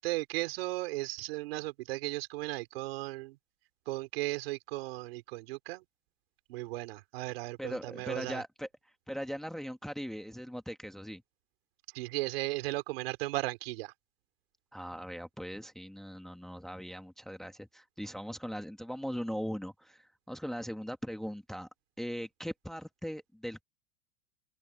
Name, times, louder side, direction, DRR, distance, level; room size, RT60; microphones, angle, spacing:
voice 1, 0.0-3.4 3.9-5.8 6.5-8.4 11.9-13.9, right 20 dB, 70° right, 4.0 m, -36 dB
voice 2, 7.6-8.7 9.1-11.2 14.7-21.7 22.0-23.6, equal, ahead, 1.1 m, -39 dB
open air
supercardioid pair, 170°, 31 cm